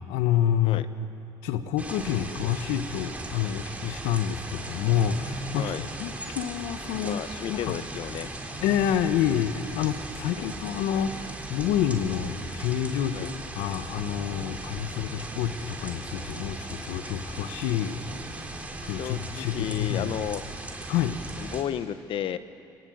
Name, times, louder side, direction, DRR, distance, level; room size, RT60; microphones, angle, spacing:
voice 1, 0.1-0.9 1.4-7.2 7.5-7.8 8.6-13.3 13.5-18.0 18.8-20.2 20.9-21.2, left 10 dB, 85° left, 10 dB, 1.3 m, -28 dB
sound 1, 1.8-21.6, right 2 dB, 15° right, 3.5 m, -38 dB
voice 2, 7.0-8.3 10.3-10.5 13.1-13.3 18.9-20.4 21.4-22.4, left 10 dB, 65° left, 12 dB, 1.1 m, -33 dB
26.0 x 17.5 x 8.1 m, 2.5 s
supercardioid pair, 70°, 10 cm